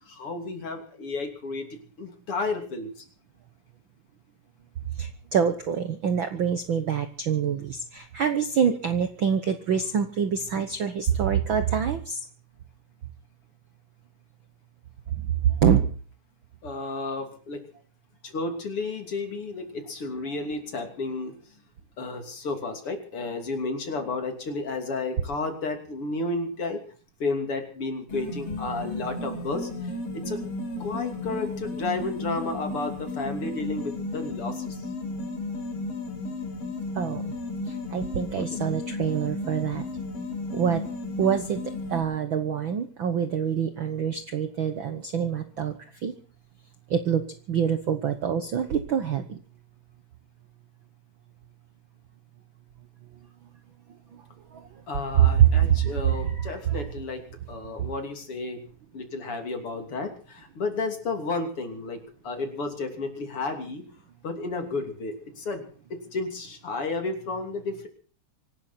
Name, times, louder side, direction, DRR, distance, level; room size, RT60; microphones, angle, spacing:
voice 1, 0.0-1.7 2.0-3.0 16.6-17.6 18.2-21.3 22.0-26.8 27.2-30.4 30.8-34.8 38.4-38.5 54.9-57.2 57.5-58.6 58.9-63.8 64.2-67.9, left 3 dB, 40° left, 5 dB, 3.6 m, -32 dB
voice 2, 5.0-12.2 15.1-15.8 36.9-37.3 37.7-39.8 40.5-40.8 41.2-41.6 41.9-46.1 46.9-47.2 47.5-49.4 54.1-54.2 54.5-54.7 55.2-56.5 57.8-57.9, right 8 dB, 80° right, 9 dB, 1.1 m, -25 dB
sound 1, 28.1-42.0, left 2 dB, 85° left, 6.7 m, -34 dB
25.5 x 13.0 x 4.4 m, 0.43 s
omnidirectional pair, 3.9 m